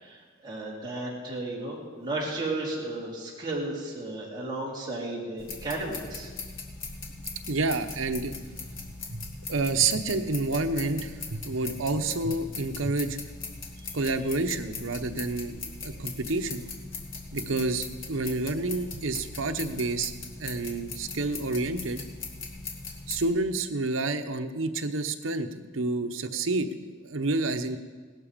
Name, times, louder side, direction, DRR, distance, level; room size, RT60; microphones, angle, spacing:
voice 1, 0.0-6.3, right 2 dB, 20° right, -5 dB, 3.7 m, -34 dB
sound 1, 5.4-23.3, left 4 dB, 90° left, 2.0 m, -40 dB
voice 2, 7.5-8.3 8.7-8.8 9.1-9.2 9.5-13.2 13.9-16.7 17.3-20.1 20.4-22.0 23.1-27.8, right 3 dB, 85° right, 7 dB, 1.0 m, -29 dB
18.0 x 12.5 x 5.2 m, 1.4 s
head